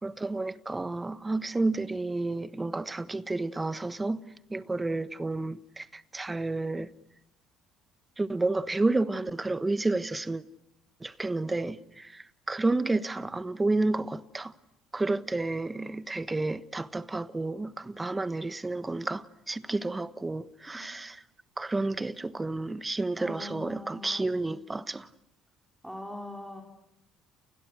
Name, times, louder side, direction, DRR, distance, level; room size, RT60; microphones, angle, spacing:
voice 1, 0.0-4.2 4.5-6.9 8.2-10.4 11.0-14.5 14.9-21.2 21.6-25.1, right 2 dB, 20° right, 1.4 m, -31 dB
voice 2, 23.2-24.4 25.8-26.6, left 1 dB, ahead, 4.6 m, -42 dB
29.5 x 29.5 x 6.6 m
hypercardioid pair, 60°, 0 cm